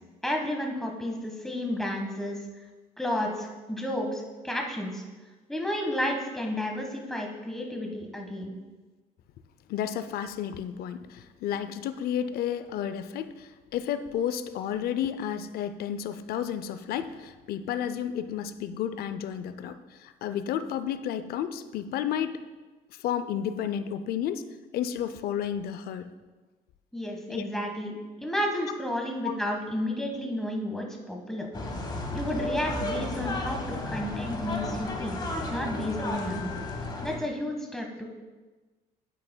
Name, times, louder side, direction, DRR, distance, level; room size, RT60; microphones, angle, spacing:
voice 1, 0.2-2.4 3.0-5.0 5.5-8.5 26.9-31.5 32.1-35.2 35.5-36.5 37.0-38.0, left 1 dB, ahead, 1 dB, 1.3 m, -32 dB
voice 2, 9.7-22.4 23.0-24.4 24.7-26.1 27.3-27.4 29.2-29.3, left 9 dB, 65° left, 11 dB, 0.5 m, -32 dB
sound 1, 31.5-37.2, left 2 dB, 25° left, 1.2 m, -33 dB
9.0 x 8.9 x 2.2 m, 1.3 s
cardioid pair, 110°, 17 cm